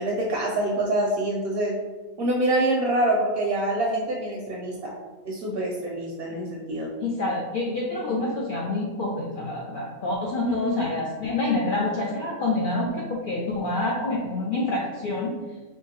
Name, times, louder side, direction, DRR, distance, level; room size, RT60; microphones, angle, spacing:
voice 1, 0.0-1.8 2.2-4.9 5.2-6.9 10.4-10.7, right 1 dB, 60° right, -2 dB, 0.6 m, -25 dB
voice 2, 7.0-15.3, left 2 dB, 70° left, -3 dB, 0.5 m, -27 dB
4.4 x 2.2 x 2.8 m, 1.3 s
omnidirectional pair, 1.4 m